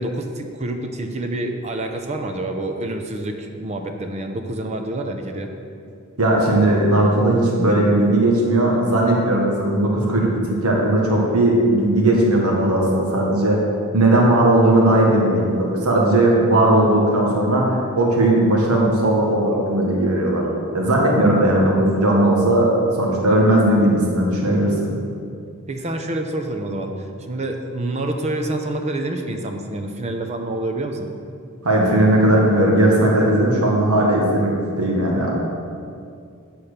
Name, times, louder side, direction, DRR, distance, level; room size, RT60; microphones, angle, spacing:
voice 1, 0.0-5.5 25.7-31.1, right 1 dB, 30° right, 4 dB, 0.6 m, -27 dB
voice 2, 6.2-13.6 13.9-20.5 20.7-24.9 31.6-35.3, right 1 dB, 90° right, -2 dB, 1.5 m, -17 dB
9.8 x 4.3 x 6.6 m, 2.4 s
head